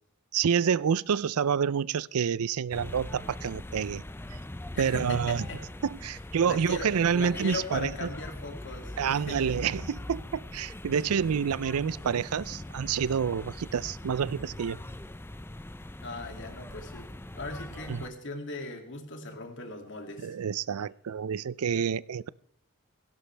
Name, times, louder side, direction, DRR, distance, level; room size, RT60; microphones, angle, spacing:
voice 1, 0.3-4.0 4.8-5.4 5.8-8.1 9.0-14.8 17.9-18.0 20.2-22.3, right 7 dB, 80° right, 0.5 m, -28 dB
sound 1, 2.7-18.1, left 1 dB, 10° left, 0.5 m, -41 dB
voice 2, 4.7-5.6 6.5-9.6 16.0-20.3, left 2 dB, 60° left, 2.5 m, -39 dB
17.0 x 16.5 x 3.4 m
head